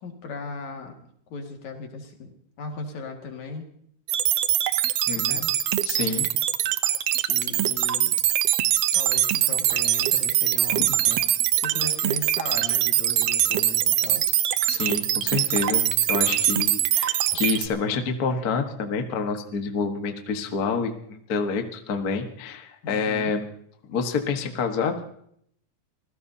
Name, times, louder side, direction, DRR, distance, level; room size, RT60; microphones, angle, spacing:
voice 1, 0.0-1.0 1.3-3.6 5.2-5.5 7.3-8.2 8.9-11.2 11.5-14.3 16.2-16.5 22.8-23.3, left 4 dB, 70° left, 3 dB, 3.3 m, -37 dB
sound 1, 4.1-17.7, right 12 dB, 75° right, 1.4 m, -23 dB
voice 2, 5.1-5.4 5.8-6.3 10.8-10.9 14.7-23.4 23.9-25.0, left 5 dB, 45° left, 5 dB, 1.2 m, -28 dB
25.5 x 16.5 x 2.7 m, 0.68 s
omnidirectional pair, 3.4 m